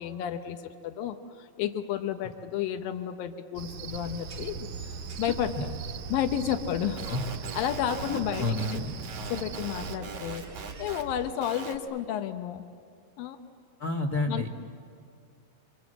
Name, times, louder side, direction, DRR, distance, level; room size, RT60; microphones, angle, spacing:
voice 1, 0.0-4.7 5.2-5.7 6.1-7.0 7.5-8.6 9.3-10.4 10.8-12.6 13.2-13.4 14.3-14.5, left 10 dB, 85° left, 8 dB, 2.8 m, -31 dB
Cricket, 3.6-10.0, right 5 dB, 70° right, 2.1 m, -40 dB
sound 1, 3.9-11.3, right 4 dB, 45° right, 1.3 m, -45 dB
sound 2, 6.7-11.0 11.3-11.8, right 5 dB, 90° right, 3.8 m, -41 dB
voice 2, 8.1-8.9 13.8-14.5, left 2 dB, 60° left, 0 dB, 1.0 m, -30 dB
28.5 x 25.0 x 7.8 m, 2.2 s
omnidirectional pair, 4.0 m